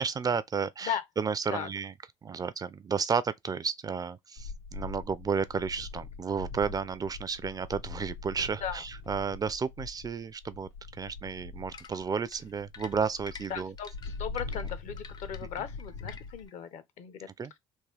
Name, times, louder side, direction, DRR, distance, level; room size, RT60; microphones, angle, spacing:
voice 1, 0.0-1.9 2.2-10.7 11.0-13.7 17.4-17.5, right 6 dB, 30° right, 0.4 m, -32 dB
sound 1, 4.4-16.5, left 4 dB, 90° left, 1.3 m, -42 dB
sound 2, 11.7-16.5, left 5 dB, 30° left, 0.5 m, -48 dB
voice 2, 13.5-17.3, left 8 dB, 60° left, 0.8 m, -37 dB
3.6 x 2.4 x 3.3 m
hypercardioid pair, 70°, 13 cm